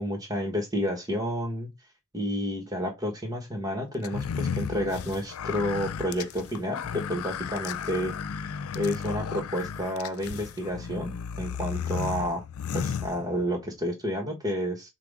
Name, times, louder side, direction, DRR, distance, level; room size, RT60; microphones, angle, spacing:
voice 1, 0.0-1.7 2.1-12.4 12.7-14.9, equal, 15° right, 1.3 m, -30 dB
sound 1, 4.0-13.7, left 7 dB, 80° left, 0.4 m, -34 dB
6.0 x 2.3 x 3.5 m
head